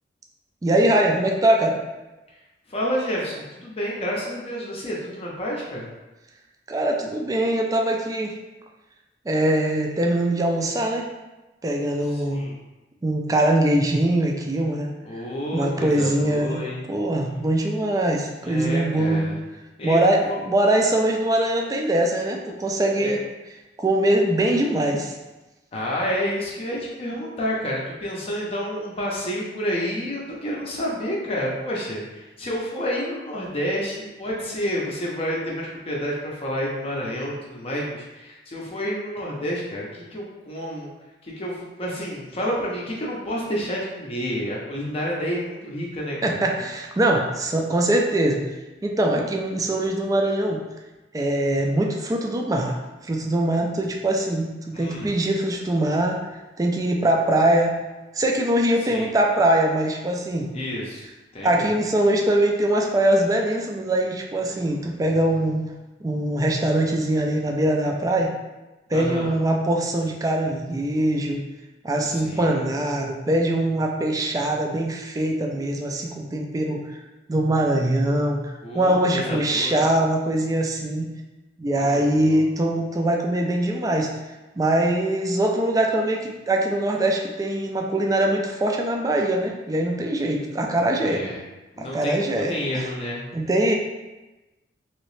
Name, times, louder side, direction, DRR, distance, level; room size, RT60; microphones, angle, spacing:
voice 1, 0.6-1.8 6.7-8.3 9.3-11.1 11.6-12.5 13.0-14.9 15.5-19.2 19.8-23.2 23.8-25.1 46.2-48.5 48.8-50.6 51.1-52.8 53.0-56.2 56.6-57.8 58.1-60.5 61.4-65.6 66.0-68.3 68.9-71.4 71.8-77.0 77.3-81.1 81.6-84.1 84.6-91.2 91.8-92.9 93.3-93.7, right 1 dB, 20° right, 1 dB, 0.3 m, -22 dB
voice 2, 2.7-5.9 12.1-12.5 15.0-16.8 18.4-19.4 19.8-20.4 23.0-23.1 25.7-40.9 41.2-46.4 54.7-55.1 58.9-59.1 60.5-61.0 61.3-61.7 68.9-69.3 72.1-72.6 78.6-79.8 81.7-82.4 91.0-91.4 91.7-93.3, equal, 35° left, -4 dB, 0.5 m, -29 dB
3.0 x 2.8 x 3.1 m, 1.1 s
head